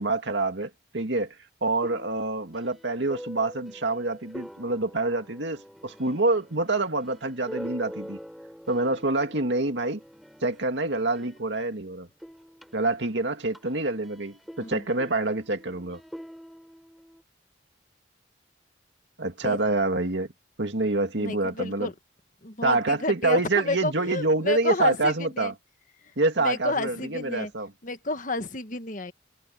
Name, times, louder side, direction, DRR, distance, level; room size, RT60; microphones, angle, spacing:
voice 1, 0.0-1.3 1.6-8.2 8.7-10.0 10.4-12.1 12.7-16.0 19.2-20.3 20.6-21.9 22.6-25.5 26.2-27.7, right 2 dB, 75° right, 2.2 m, -26 dB
sound 1, 1.8-11.8 12.1-17.2, equal, ahead, 5.4 m, -45 dB
voice 2, 21.2-21.9 22.4-25.5 26.4-27.5 27.8-29.1, left 2 dB, 45° left, 1.5 m, -31 dB
head